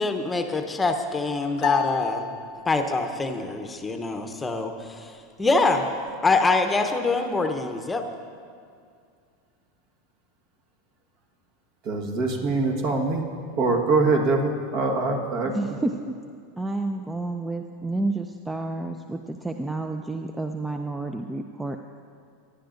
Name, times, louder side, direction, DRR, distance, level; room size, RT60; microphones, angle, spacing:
voice 1, 0.0-2.3 2.7-5.9 6.2-8.1, left 3 dB, 15° left, 6 dB, 0.8 m, -24 dB
sound 1, 1.6-3.1, left 9 dB, 45° left, 0.5 m, -31 dB
voice 2, 11.8-13.2 13.6-15.5, right 3 dB, 55° right, 2 dB, 1.5 m, -23 dB
voice 3, 15.5-16.2 16.6-21.8, right 2 dB, 10° right, 6 dB, 0.5 m, -30 dB
18.0 x 10.5 x 2.6 m, 2.2 s
hypercardioid pair, 90°, 0 cm